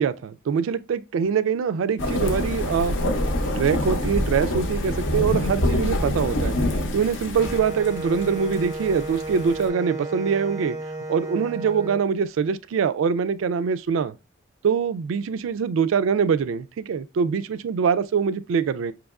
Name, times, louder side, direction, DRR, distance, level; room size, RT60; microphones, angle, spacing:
voice 1, 0.0-3.0 3.6-6.6 6.9-10.8 11.1-14.1 14.6-18.9, right 6 dB, 75° right, 0.3 m, -23 dB
sound 1, 2.0-9.7, left 1 dB, 65° left, 0.6 m, -26 dB
Wind instrument woodwind instrument, 7.4-12.0, right 2 dB, 15° right, 0.5 m, -33 dB
5.2 x 2.9 x 2.3 m
head